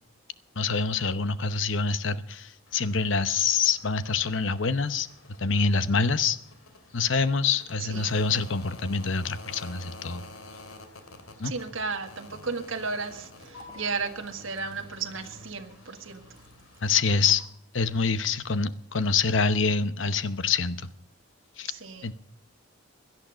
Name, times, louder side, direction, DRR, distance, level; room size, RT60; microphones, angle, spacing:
voice 1, 0.6-5.1 5.4-6.4 6.9-10.2 11.4-11.5 16.8-17.4 17.7-20.9 21.6-21.7 22.0-22.1, left 5 dB, 65° left, 13 dB, 0.9 m, -26 dB
sound 1, 2.7-17.4, left 2 dB, 85° left, 2.5 m, -49 dB
voice 2, 11.4-16.2 21.7-22.1, right 4 dB, 70° right, 5 dB, 1.6 m, -34 dB
Liquid, 13.4-17.6 17.9-18.0, right 2 dB, 20° right, 2.2 m, -56 dB
17.0 x 11.5 x 5.1 m, 0.70 s
head